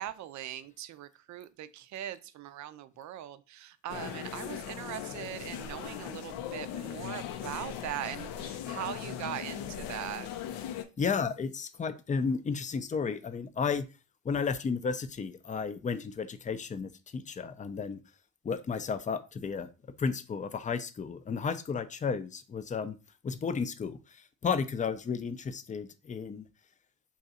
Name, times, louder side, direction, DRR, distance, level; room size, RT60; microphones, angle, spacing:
voice 1, 0.0-10.3, right 12 dB, 55° right, 13 dB, 0.5 m, -40 dB
sound 1, 3.9-10.8, left 10 dB, 80° left, 0.5 m, -39 dB
voice 2, 11.0-13.9 14.2-18.0 18.4-19.7 20.0-23.0 23.2-26.5, left 5 dB, 25° left, 11 dB, 0.4 m, -33 dB
2.7 x 2.4 x 4.0 m, 0.31 s
supercardioid pair, 55°, 34 cm